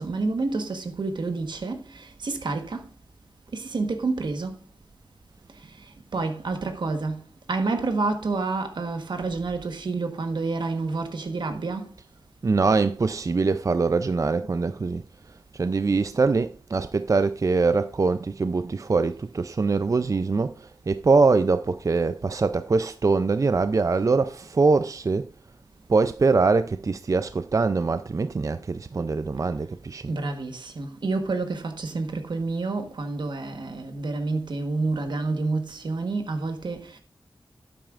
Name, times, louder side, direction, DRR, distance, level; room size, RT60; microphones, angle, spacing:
voice 1, 0.0-2.9 3.5-4.6 6.1-7.2 7.5-11.9 30.1-37.0, right 3 dB, 85° right, 1.3 m, -29 dB
voice 2, 12.4-15.0 15.5-25.3 25.9-30.1, right 4 dB, 45° right, 0.4 m, -23 dB
11.5 x 9.0 x 2.5 m
wide cardioid pair, 65°, 8 cm